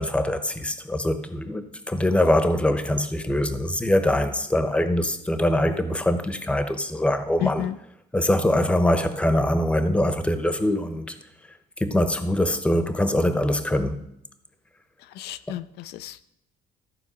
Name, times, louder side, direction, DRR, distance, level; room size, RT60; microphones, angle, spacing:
voice 1, 0.0-7.7 8.1-11.1 11.8-14.0, left 1 dB, 5° left, 0.9 m, -23 dB
voice 2, 7.4-7.8 15.2-16.2, left 11 dB, 75° left, 0.4 m, -31 dB
13.5 x 4.6 x 6.1 m
cardioid pair, 110°, 17 cm